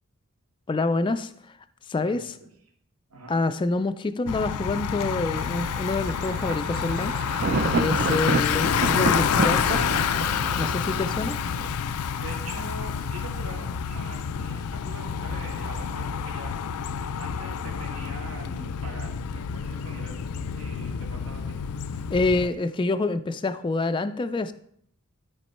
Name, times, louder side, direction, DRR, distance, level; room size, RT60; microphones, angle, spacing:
voice 1, 0.7-1.6 1.9-2.4 3.3-7.2 7.8-9.8 10.6-11.4 22.1-24.5, left 3 dB, 20° left, 9 dB, 0.3 m, -27 dB
voice 2, 2.0-2.5 3.1-3.4 12.2-16.5 17.2-21.6, right 2 dB, 80° right, 0 dB, 2.2 m, -43 dB
Bicycle, 4.3-22.5, left 7 dB, 90° left, 0.4 m, -28 dB
Thunder, 5.3-11.7, right 3 dB, 45° right, 0.5 m, -30 dB
12.0 x 5.3 x 4.3 m, 0.67 s
head